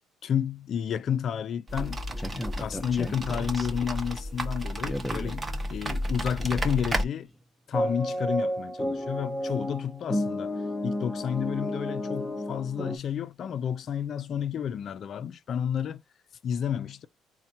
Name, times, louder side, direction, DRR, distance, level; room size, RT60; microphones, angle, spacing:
voice 1, 0.2-2.0 2.3-5.4 5.7-7.3 7.7-10.5 10.8-16.0 16.4-17.1, left 8 dB, 55° left, 0.4 m, -31 dB
sound 1, 1.7-7.0, equal, 25° right, 0.9 m, -32 dB
sound 2, 2.0-3.9 4.8-5.4 6.4-6.9 7.2-7.3 7.7-13.0, equal, 5° left, 0.8 m, -32 dB
4.2 x 2.2 x 2.7 m
cardioid pair, 90°, 0 cm